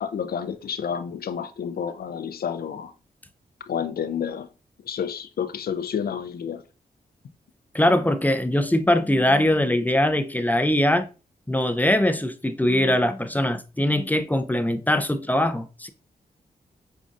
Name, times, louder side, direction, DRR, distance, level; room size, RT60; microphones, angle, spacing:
voice 1, 0.0-2.9 3.7-4.5 4.8-6.6, left 7 dB, 65° left, 0.4 m, -30 dB
voice 2, 7.7-11.1 11.5-15.9, left 1 dB, 10° left, 0.5 m, -22 dB
5.2 x 2.3 x 2.5 m
supercardioid pair, 45°, 17 cm